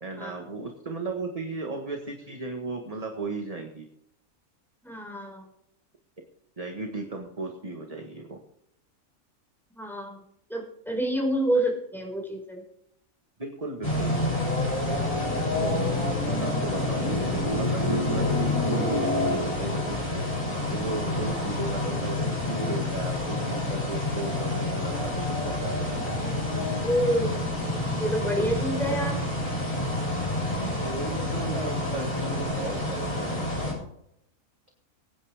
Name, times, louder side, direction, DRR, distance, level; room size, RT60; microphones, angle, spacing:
voice 1, 0.0-3.8 6.6-8.4 13.4-14.5 15.6-15.9 16.2-20.3 20.7-26.4 27.1-27.4 28.7-29.2 30.6-33.7, right 3 dB, 25° right, 3 dB, 1.5 m, -36 dB
voice 2, 4.8-5.5 9.8-10.2 10.5-12.6 14.9-15.6 21.6-21.9 26.8-27.3 28.0-29.2, right 1 dB, ahead, -2 dB, 5.3 m, -28 dB
sound 1, 13.8-33.7, left 2 dB, 30° left, 6.7 m, -28 dB
23.5 x 9.6 x 3.5 m, 0.75 s
omnidirectional pair, 1.5 m